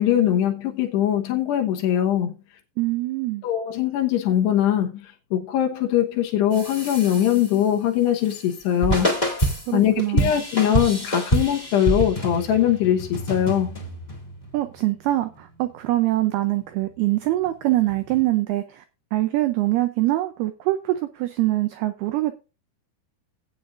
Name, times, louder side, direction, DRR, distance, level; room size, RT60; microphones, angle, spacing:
voice 1, 0.0-2.3 3.4-9.2 9.7-13.8, left 11 dB, 75° left, 3.0 m, -22 dB
voice 2, 2.8-3.4 9.7-10.3 14.5-18.8 19.1-22.4, right 17 dB, 90° right, 2.2 m, -24 dB
sound 1, 6.5-7.7 8.2-18.2, right 1 dB, 20° left, 1.1 m, -28 dB
16.5 x 8.7 x 2.5 m
omnidirectional pair, 5.3 m